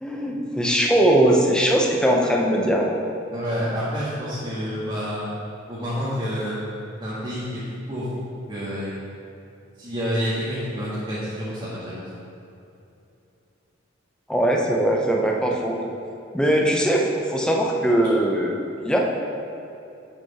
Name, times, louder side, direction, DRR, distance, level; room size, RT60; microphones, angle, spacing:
voice 1, 0.0-2.9 14.3-15.8 16.3-18.5 18.8-19.0, right 1 dB, 5° left, -1 dB, 0.8 m, -20 dB
voice 2, 3.3-5.2 5.7-6.6 7.0-7.4 7.9-8.1 8.5-9.0 9.8-12.1, equal, 25° right, -11 dB, 1.9 m, -28 dB
8.3 x 7.5 x 4.4 m, 2.7 s
head